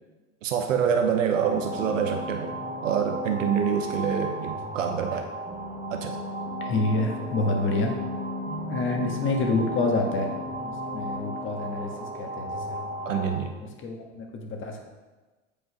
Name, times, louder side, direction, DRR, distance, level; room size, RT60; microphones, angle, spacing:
voice 1, 0.4-2.5 2.8-5.3 5.9-6.2 13.0-13.5, right 7 dB, 80° right, 4 dB, 0.9 m, -26 dB
sound 1, 1.3-13.4, equal, 20° right, 1.1 m, -34 dB
voice 2, 6.6-8.0 8.7-12.9 13.8-14.8, left 2 dB, 30° left, 2 dB, 1.6 m, -28 dB
7.8 x 5.3 x 5.1 m, 1.2 s
hypercardioid pair, 100°, 37 cm